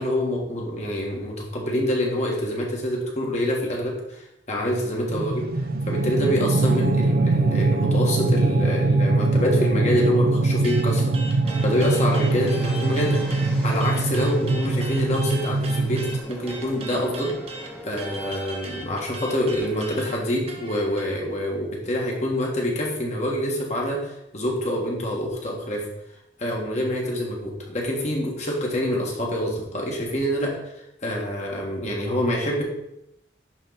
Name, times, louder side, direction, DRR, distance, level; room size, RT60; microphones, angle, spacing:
voice 1, 0.0-5.5 5.9-13.2 13.6-17.3 17.8-25.8 26.4-30.5 31.0-32.6, equal, 40° left, -1 dB, 1.7 m, -26 dB
sound 1, 5.1-16.2, right 3 dB, 55° right, 0.5 m, -22 dB
sound 2, 10.6-13.5 13.8-21.1, right 2 dB, 35° right, 1.1 m, -38 dB
sound 3, 11.4-18.3, equal, 5° left, 1.1 m, -40 dB
10.5 x 3.9 x 4.0 m, 0.84 s
head